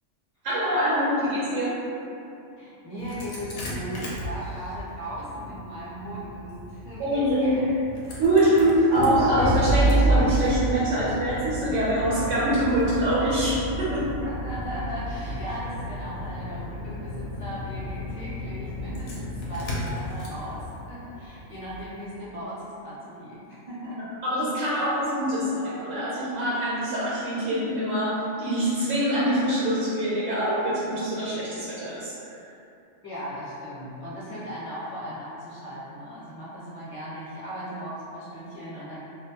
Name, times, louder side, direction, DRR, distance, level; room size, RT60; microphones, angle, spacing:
voice 1, 0.4-1.8 7.0-7.6 8.2-14.0 24.2-32.1, right 1 dB, 90° right, -8 dB, 1.0 m, -24 dB
voice 2, 2.6-7.7 8.4-8.7 14.2-24.1 24.7-24.8 33.0-39.0, equal, 35° left, -10 dB, 0.7 m, -37 dB
Engine starting, 3.0-21.9, right 1 dB, 75° left, 0.9 m, -30 dB
2.4 x 2.1 x 2.7 m, 2.7 s
omnidirectional pair, 1.3 m